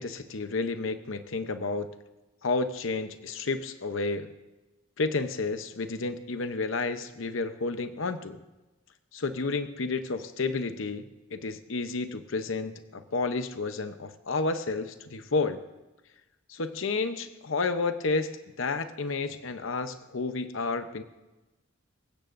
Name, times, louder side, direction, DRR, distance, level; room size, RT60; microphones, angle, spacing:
voice 1, 0.0-1.9 2.4-4.3 5.0-8.4 9.1-15.6 16.5-21.0, left 3 dB, 70° left, 9 dB, 0.8 m, -31 dB
26.0 x 15.5 x 2.6 m, 1.1 s
head